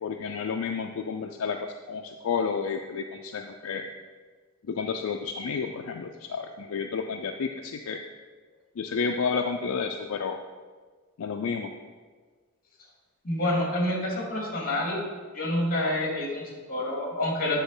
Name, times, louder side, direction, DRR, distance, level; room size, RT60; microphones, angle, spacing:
voice 1, 0.0-1.6 1.9-3.9 4.7-8.0 8.8-10.4 11.2-11.7, left 5 dB, 75° left, 4 dB, 0.4 m, -31 dB
voice 2, 13.2-15.0 15.3-17.6, left 1 dB, 45° left, -2 dB, 2.2 m, -28 dB
9.1 x 3.8 x 5.5 m, 1.5 s
head